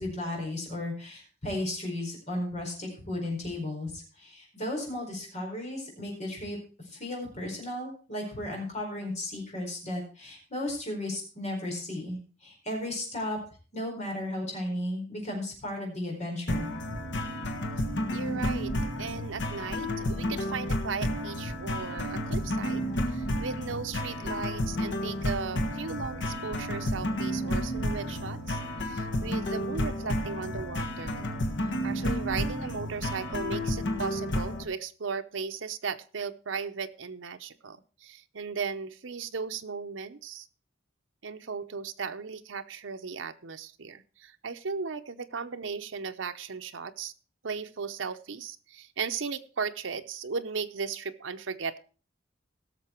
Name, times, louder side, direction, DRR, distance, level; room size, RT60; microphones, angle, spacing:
voice 1, 0.0-6.6 6.9-13.4 13.7-16.7, left 1 dB, 35° left, 0 dB, 4.6 m, -35 dB
sound 1, 16.5-34.6, left 1 dB, 65° left, 1.4 m, -31 dB
voice 2, 18.1-31.3 31.8-40.5 41.2-47.1 47.4-51.8, right 5 dB, 80° right, 8 dB, 0.8 m, -36 dB
17.0 x 6.7 x 4.5 m, 0.38 s
head